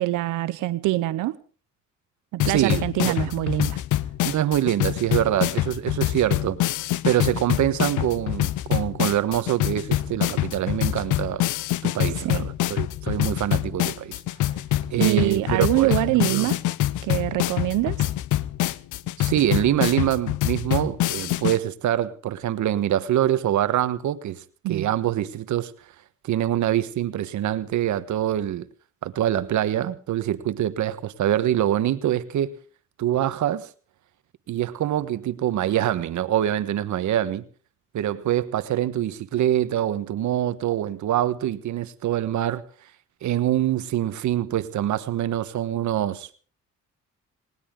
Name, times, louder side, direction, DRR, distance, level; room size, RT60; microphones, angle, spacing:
voice 1, 0.0-1.4 2.3-3.8 12.2-12.5 15.0-16.6 17.0-18.0 24.6-24.9, right 17 dB, 90° right, 0.8 m, -24 dB
sound 1, 2.4-21.6, left 14 dB, 80° left, 0.7 m, -25 dB
voice 2, 2.4-3.1 4.3-6.6 7.0-11.4 11.8-14.1 14.9-16.5 19.2-24.4 24.7-25.7 26.2-28.7 29.0-32.5 33.0-33.7 34.5-37.4 37.9-42.6 43.2-46.3, right 12 dB, 70° right, 1.3 m, -25 dB
19.5 x 19.5 x 3.8 m
cardioid pair, 90°, 30 cm